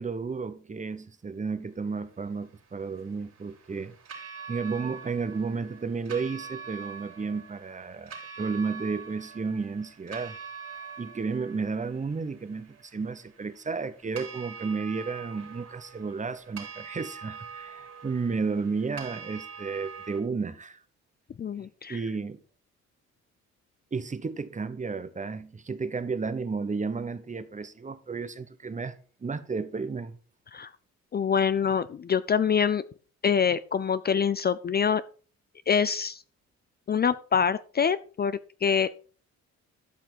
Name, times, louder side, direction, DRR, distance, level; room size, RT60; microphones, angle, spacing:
voice 1, 0.0-3.9 4.5-10.4 11.0-20.8 21.9-22.4 23.9-29.0 29.2-30.2, right 4 dB, 25° right, 0.9 m, -32 dB
sound 1, 2.2-20.2, right 6 dB, 55° right, 3.8 m, -44 dB
voice 2, 21.4-22.0 30.5-30.7 31.1-32.8 33.2-35.0 35.7-36.2 36.9-38.9, left 7 dB, 35° left, 0.5 m, -25 dB
12.5 x 5.9 x 4.6 m
cardioid pair, 90°, 30 cm